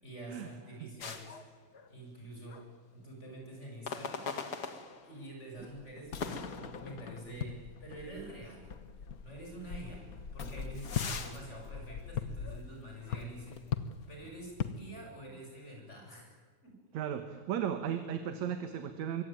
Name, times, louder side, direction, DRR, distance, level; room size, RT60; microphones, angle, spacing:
voice 1, 0.0-1.4 1.9-2.6 2.9-4.3 5.0-8.7 9.2-13.6 14.1-16.4 16.6-16.8, right 1 dB, 20° left, 1 dB, 7.8 m, -47 dB
sound 1, 1.0-2.2 2.5-2.7 3.9-5.4 6.2-7.4 7.8-7.9 8.6-8.7 10.0-12.7 13.1-13.3, left 5 dB, 40° left, 1.9 m, -42 dB
sound 2, 5.6-14.8, left 7 dB, 75° left, 0.8 m, -40 dB
voice 2, 16.9-19.2, right 9 dB, 70° right, 8 dB, 2.6 m, -35 dB
24.0 x 24.0 x 9.3 m, 1.5 s
omnidirectional pair, 3.3 m